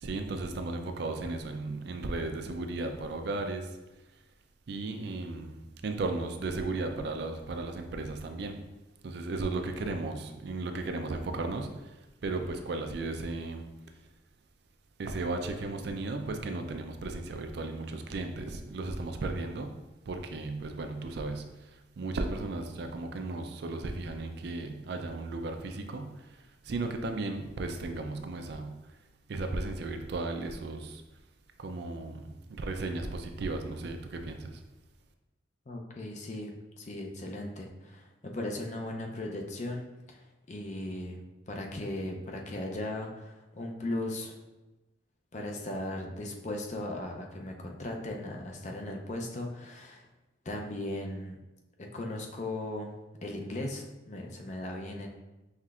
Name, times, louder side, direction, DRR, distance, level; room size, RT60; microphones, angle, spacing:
voice 1, 0.0-3.7 4.7-8.6 9.0-11.8 12.2-13.7 15.0-19.8 20.1-21.5 22.0-26.3 26.6-28.9 29.3-31.0 31.6-34.6, right 2 dB, 55° right, 5 dB, 0.4 m, -35 dB
voice 2, 35.7-41.2 41.5-44.3 45.3-50.1 50.5-51.4 51.9-52.9 53.2-55.1, left 1 dB, 40° left, 1 dB, 0.5 m, -37 dB
5.7 x 3.3 x 2.4 m, 1.0 s
head